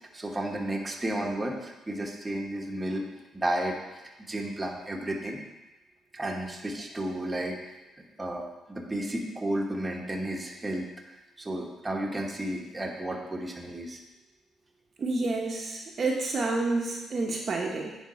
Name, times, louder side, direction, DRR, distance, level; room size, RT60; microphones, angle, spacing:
voice 1, 0.1-3.0 3.3-5.4 6.1-7.8 8.2-14.0, right 1 dB, 20° right, 0 dB, 1.1 m, -33 dB
voice 2, 15.0-18.0, right 3 dB, 45° right, 0 dB, 0.9 m, -29 dB
9.9 x 3.6 x 4.3 m, 1.0 s
cardioid pair, 90°, 0 cm